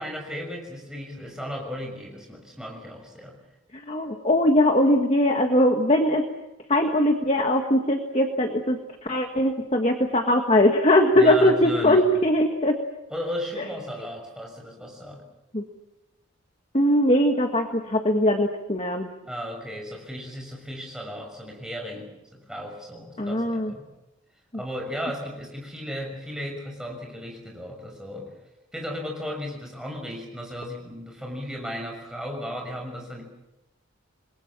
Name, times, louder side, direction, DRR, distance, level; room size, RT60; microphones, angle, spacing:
voice 1, 0.0-3.4 11.1-12.0 13.1-15.2 19.2-23.9 24.5-28.3 28.7-33.2, equal, 5° right, 1 dB, 6.3 m, -35 dB
voice 2, 3.7-6.3 6.7-12.8 15.5-15.6 16.7-19.1 23.2-23.7, left 1 dB, 30° left, 4 dB, 1.6 m, -21 dB
28.5 x 21.5 x 7.4 m, 0.96 s
head